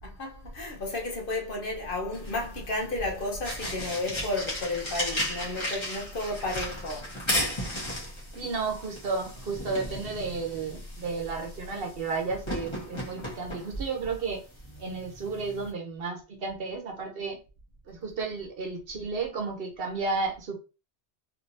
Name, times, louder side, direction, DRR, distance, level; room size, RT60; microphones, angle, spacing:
voice 1, 0.0-7.1 7.7-7.8, left 2 dB, 55° left, 1.0 m, -32 dB
sound 1, 2.1-15.7, left 1 dB, 25° left, 1.2 m, -36 dB
voice 2, 8.3-14.4 14.8-17.4 17.9-20.6, right 4 dB, 60° right, 1.0 m, -33 dB
3.3 x 2.8 x 2.6 m
omnidirectional pair, 1.2 m